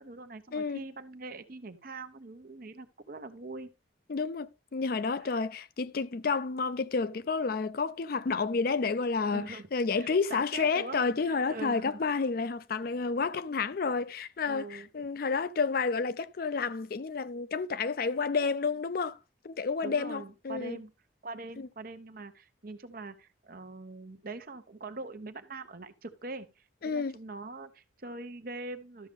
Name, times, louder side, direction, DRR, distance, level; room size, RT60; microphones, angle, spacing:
voice 1, 0.0-3.7 5.2-5.3 9.3-9.7 10.0-12.0 14.5-14.9 19.8-20.9 21.2-29.1, right 3 dB, 45° right, 0.9 m, -43 dB
voice 2, 0.5-0.8 4.1-19.2 19.4-20.8 21.6-21.7 26.8-27.2, left 4 dB, 50° left, 0.4 m, -30 dB
12.5 x 6.4 x 3.5 m
head